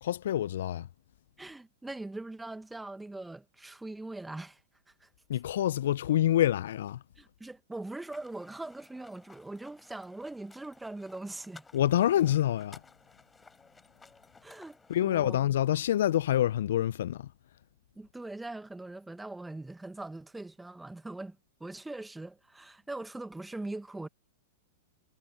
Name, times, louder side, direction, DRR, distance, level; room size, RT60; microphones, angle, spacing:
voice 1, 0.0-0.9 5.3-7.0 11.7-12.8 14.9-17.3, left 12 dB, 65° left, 0.6 m, -27 dB
voice 2, 1.4-4.6 5.0-5.1 7.2-11.7 14.4-15.4 18.0-24.1, right 2 dB, 5° right, 1.8 m, -41 dB
sound 1, 8.0-15.1, left 4 dB, 10° left, 4.0 m, -57 dB
hypercardioid pair, 105°, 0 cm